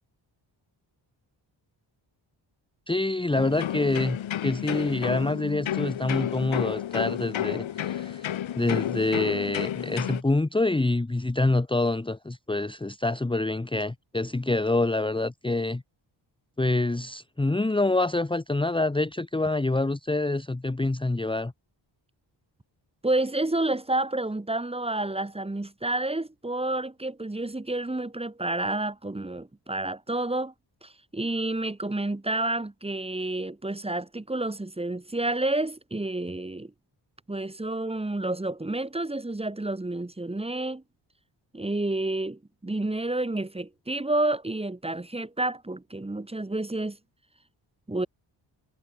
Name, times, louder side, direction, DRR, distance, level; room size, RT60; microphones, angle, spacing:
voice 1, 2.9-15.8 16.6-21.5, left 2 dB, 10° left, 1.2 m, -26 dB
sound 1, 3.3-10.2, left 11 dB, 80° left, 2.1 m, -31 dB
voice 2, 23.0-30.5 30.8-36.7 37.3-40.8 41.5-47.0 47.9-48.1, right 2 dB, 10° right, 1.9 m, -29 dB
cardioid pair, 100°, 46 cm